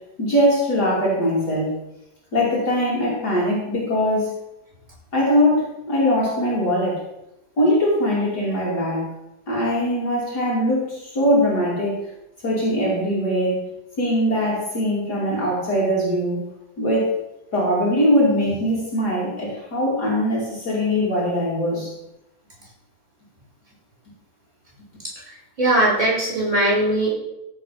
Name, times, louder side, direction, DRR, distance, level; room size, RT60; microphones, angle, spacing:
voice 1, 0.2-1.7 2.3-4.3 5.1-7.0 7.6-9.1 9.5-12.0 12.4-13.6 14.0-16.4 16.8-17.1 17.5-21.9, equal, 60° left, -5 dB, 3.3 m, -21 dB
voice 2, 25.1-27.1, right 1 dB, 20° right, -5 dB, 5.0 m, -20 dB
14.0 x 5.2 x 5.7 m, 0.89 s
omnidirectional pair, 2.0 m